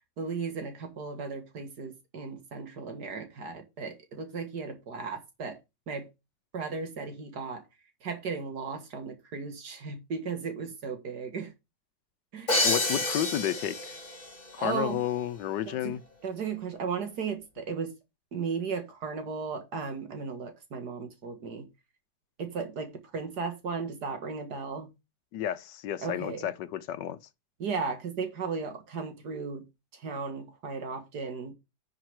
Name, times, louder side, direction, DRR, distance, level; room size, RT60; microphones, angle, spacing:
voice 1, 0.2-5.6 5.9-6.1 6.5-7.6 8.0-11.5 12.3-12.6 14.6-15.0 15.7-16.0 16.2-17.9 18.3-21.7 22.4-24.9 26.0-26.4 27.6-29.7 29.9-31.5, right 5 dB, 65° right, 2.3 m, -35 dB
Crash cymbal, 12.5-14.3, left 2 dB, 40° left, 2.6 m, -28 dB
voice 2, 12.6-13.9 14.5-16.0 25.3-27.2, left 11 dB, 85° left, 1.4 m, -31 dB
10.5 x 4.9 x 4.9 m
omnidirectional pair, 1.8 m